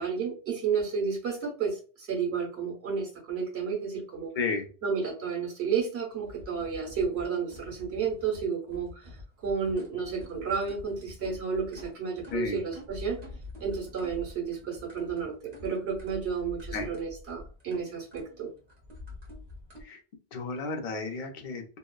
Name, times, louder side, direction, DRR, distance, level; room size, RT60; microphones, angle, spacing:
voice 1, 0.0-4.3 4.8-9.1 9.4-13.2 13.6-18.5, right 6 dB, 90° right, 0 dB, 1.2 m, -32 dB
voice 2, 4.4-4.7 12.3-12.6 16.7-16.9 19.8-20.0 20.3-21.6, left 4 dB, 55° left, 4 dB, 0.6 m, -32 dB
sound 1, 6.2-19.8, left 2 dB, 40° right, 0.9 m, -46 dB
2.9 x 2.0 x 2.2 m, 0.38 s
omnidirectional pair, 1.1 m